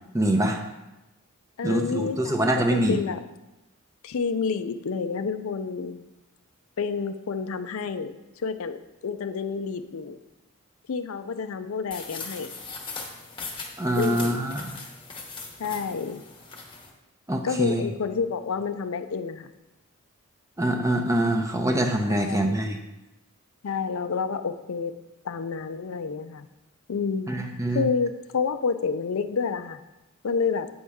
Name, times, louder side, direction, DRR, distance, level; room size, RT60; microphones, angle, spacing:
voice 1, 0.1-0.6 1.6-3.0 13.8-14.8 17.3-17.8 20.6-22.8 27.3-27.9, right 1 dB, 15° right, 4 dB, 0.6 m, -24 dB
voice 2, 1.6-3.2 4.0-6.0 6.8-8.8 9.0-10.2 10.9-12.5 14.0-14.4 15.6-16.2 17.4-19.5 22.1-22.6 23.6-24.9 25.2-26.5 26.9-27.3 27.7-29.8 30.2-30.7, left 5 dB, 70° left, 10 dB, 0.4 m, -29 dB
sound 1, 11.9-16.9, left 4 dB, 20° left, 0.9 m, -39 dB
8.5 x 5.4 x 3.5 m, 0.99 s
head